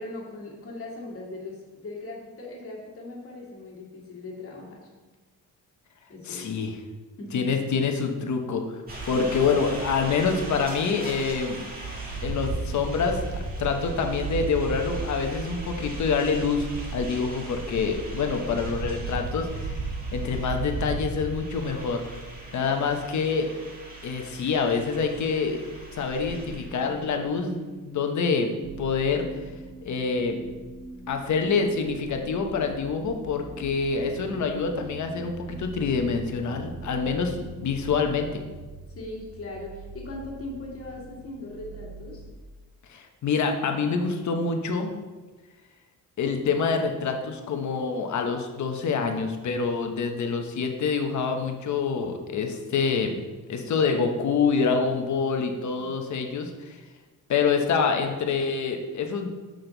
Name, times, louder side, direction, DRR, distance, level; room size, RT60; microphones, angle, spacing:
voice 1, 0.0-4.8 6.1-6.4 7.2-7.5 9.1-9.3 38.9-42.3, left 2 dB, 40° left, -3 dB, 2.1 m, -39 dB
voice 2, 6.2-6.7 7.3-11.6 12.2-19.8 20.1-22.0 22.5-23.5 24.0-28.5 28.8-29.3 29.8-30.4 31.1-38.4 42.9-44.9 46.2-53.2 53.5-56.8 57.3-59.3, left 5 dB, 60° left, 4 dB, 1.0 m, -26 dB
sound 1, 8.9-27.2, right 2 dB, 25° right, 1.6 m, -35 dB
sound 2, 26.5-38.6, right 2 dB, 20° left, 1.5 m, -45 dB
sound 3, 28.6-42.3, right 3 dB, 55° right, 1.0 m, -44 dB
7.9 x 6.5 x 3.9 m, 1.3 s
wide cardioid pair, 175°, 33 cm